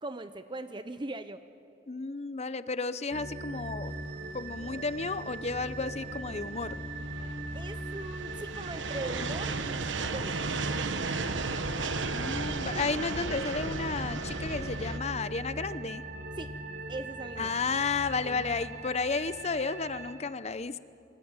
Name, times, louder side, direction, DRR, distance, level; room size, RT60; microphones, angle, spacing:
voice 1, 0.0-1.4 7.5-10.4 16.4-16.5 16.9-17.5 18.2-18.5, right 2 dB, 25° right, 10 dB, 0.7 m, -40 dB
voice 2, 1.9-4.0 4.3-6.8 12.1-16.0 17.4-20.8, left 4 dB, 35° left, 14 dB, 0.8 m, -32 dB
sound 1, 3.1-20.1, right 1 dB, 65° right, 2.7 m, -40 dB
sound 2, 4.1-15.0, right 4 dB, 90° right, 1.2 m, -35 dB
28.0 x 23.0 x 8.9 m, 2.7 s
head